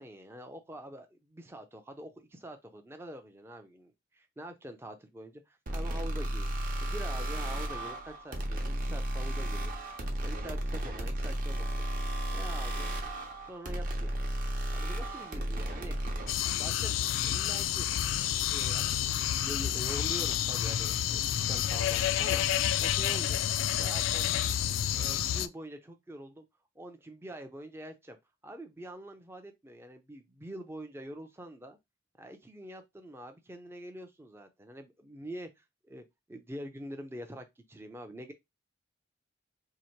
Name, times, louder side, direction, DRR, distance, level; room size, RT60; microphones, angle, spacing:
voice 1, 0.0-6.5 6.8-9.7 10.2-11.7 12.3-12.9 13.5-14.2 14.7-16.1 16.6-16.9 17.2-17.9 18.5-22.4 22.8-23.4 23.7-24.3 24.9-26.4 26.8-28.2 28.4-31.8 32.2-36.0 36.3-38.3, right 1 dB, 15° right, 0.4 m, -45 dB
sound 1, 5.7-16.3, right 1 dB, 45° right, 0.8 m, -34 dB
sound 2, 16.3-25.5, left 11 dB, 85° left, 0.3 m, -29 dB
2.9 x 2.7 x 4.4 m
head